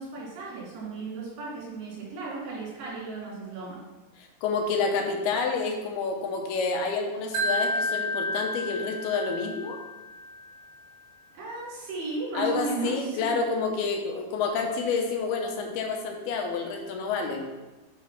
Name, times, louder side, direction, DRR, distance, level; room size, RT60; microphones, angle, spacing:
voice 1, 0.0-3.8 11.3-13.4, right 3 dB, 90° right, -6 dB, 4.8 m, -35 dB
voice 2, 4.4-9.8 12.3-17.5, left 4 dB, 80° left, 2 dB, 2.9 m, -29 dB
Wind chime, 7.3-10.5, equal, 70° right, 1.6 m, -31 dB
9.6 x 3.8 x 5.8 m, 1.1 s
omnidirectional pair, 4.5 m